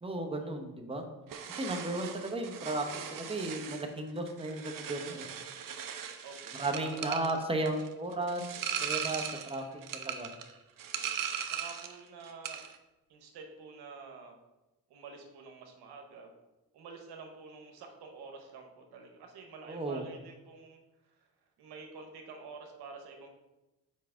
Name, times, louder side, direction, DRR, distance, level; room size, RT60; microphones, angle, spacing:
voice 1, 0.0-1.1 1.5-2.8 3.1-5.3 6.5-8.5 8.8-9.6 9.9-10.3 19.7-20.0, right 2 dB, 15° right, 2 dB, 1.0 m, -34 dB
sound 1, 1.3-12.0 12.3-12.8, right 8 dB, 60° right, 0.7 m, -39 dB
voice 2, 6.2-7.2 11.5-12.6 13.1-14.3 14.9-16.3 16.7-20.8 21.6-23.3, right 4 dB, 85° right, 3 dB, 1.0 m, -48 dB
5.6 x 5.0 x 3.7 m, 1.0 s
supercardioid pair, 60°, 38 cm